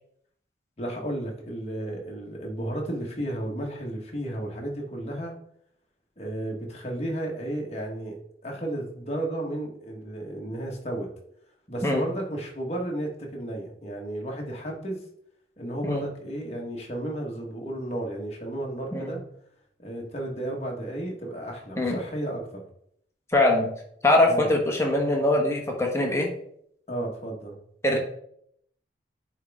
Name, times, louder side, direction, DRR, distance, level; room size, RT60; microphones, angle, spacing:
voice 1, 0.8-5.3 6.2-8.2 8.4-11.1 11.7-15.0 15.6-19.2 19.8-22.6 24.3-24.5 26.9-27.6, right 1 dB, 35° left, 0 dB, 1.5 m, -33 dB
voice 2, 23.3-23.7 24.0-26.3 27.8-28.0, left 1 dB, 15° left, 0 dB, 1.2 m, -22 dB
9.4 x 3.5 x 3.6 m, 0.68 s
head